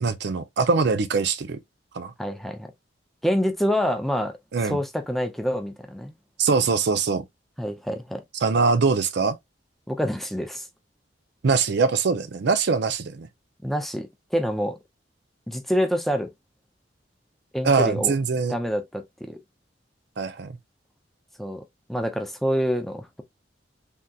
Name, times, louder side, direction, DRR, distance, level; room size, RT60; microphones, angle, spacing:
voice 1, 0.0-1.6 1.9-2.1 4.5-4.8 6.4-7.2 8.4-9.4 11.4-13.3 17.6-18.5 20.2-20.6, right 4 dB, 65° right, 0.5 m, -22 dB
voice 2, 2.2-2.7 3.2-4.4 4.6-6.1 7.6-8.2 9.9-10.6 13.6-14.8 15.5-16.3 17.5-18.1 18.5-19.4 21.4-21.6 21.9-23.2, equal, ahead, 0.4 m, -26 dB
3.5 x 2.7 x 2.2 m
head